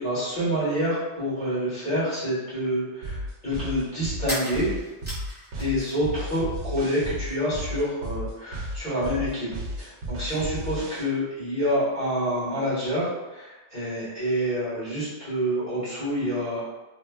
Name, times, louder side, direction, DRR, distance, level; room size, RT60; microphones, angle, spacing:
voice 1, 0.0-4.7 5.6-9.5 9.8-13.0 13.3-16.6, equal, 40° left, -14 dB, 1.6 m, -27 dB
sound 1, 1.9-2.0 4.2-6.2 6.4-7.3, equal, 10° right, 0.7 m, -37 dB
sound 2, 3.0-11.0, equal, 85° right, 0.9 m, -33 dB
3.1 x 2.2 x 2.2 m, 1.1 s
omnidirectional pair, 1.2 m